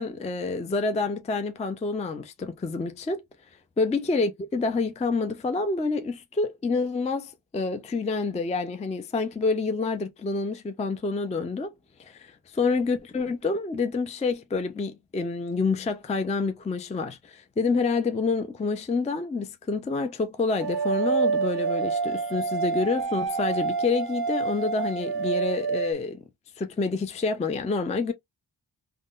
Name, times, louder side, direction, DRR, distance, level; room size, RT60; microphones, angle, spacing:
voice 1, 0.0-3.2 3.8-11.7 12.0-26.2 26.6-28.1, left 4 dB, 15° left, 0.3 m, -28 dB
sound 1, 20.6-25.9, right 5 dB, 55° right, 0.5 m, -27 dB
3.5 x 2.1 x 2.4 m
wide cardioid pair, 105°, 47 cm